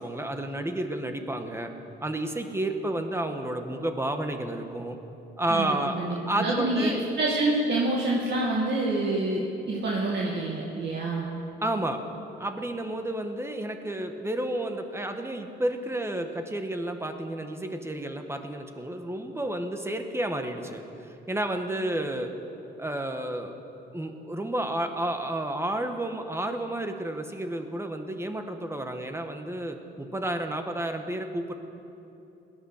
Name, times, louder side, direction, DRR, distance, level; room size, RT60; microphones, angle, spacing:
voice 1, 0.0-1.7 2.0-5.0 5.4-6.0 6.3-7.0 11.6-12.0 12.4-22.3 22.8-23.6 23.9-31.5, right 1 dB, 15° right, 6 dB, 1.4 m, -31 dB
voice 2, 5.5-6.9 7.2-11.3, right 2 dB, 60° right, -4 dB, 2.1 m, -27 dB
18.0 x 10.5 x 6.6 m, 2.9 s
cardioid pair, 90°, 20 cm